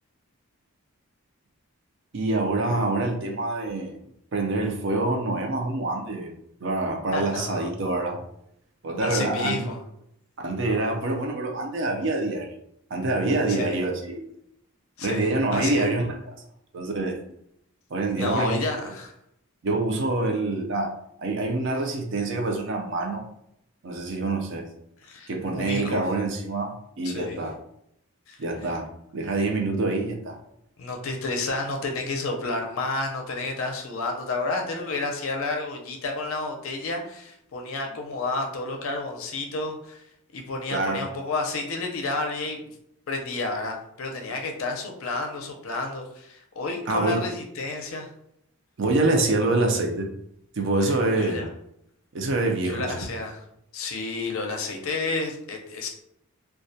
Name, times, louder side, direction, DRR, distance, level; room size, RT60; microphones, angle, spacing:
voice 1, 2.1-4.0 4.3-6.3 6.6-8.2 8.8-9.7 10.4-12.6 12.9-14.3 15.0-16.2 16.7-17.2 17.9-18.8 19.6-20.9 21.2-23.2 23.8-24.7 25.3-27.5 28.4-28.9 29.1-30.4 40.7-41.0 46.9-47.2 48.8-50.1 50.6-51.4 52.1-53.0, right 2 dB, 55° right, 2 dB, 0.4 m, -26 dB
voice 2, 7.1-7.7 9.0-9.8 13.5-13.8 15.0-15.9 18.2-19.1 25.0-26.0 27.0-27.4 28.3-28.7 30.8-40.0 40.3-42.7 43.1-48.1 50.9-51.5 52.6-53.4 53.7-55.9, left 3 dB, 65° left, 2 dB, 0.5 m, -31 dB
2.2 x 2.1 x 2.6 m, 0.75 s
head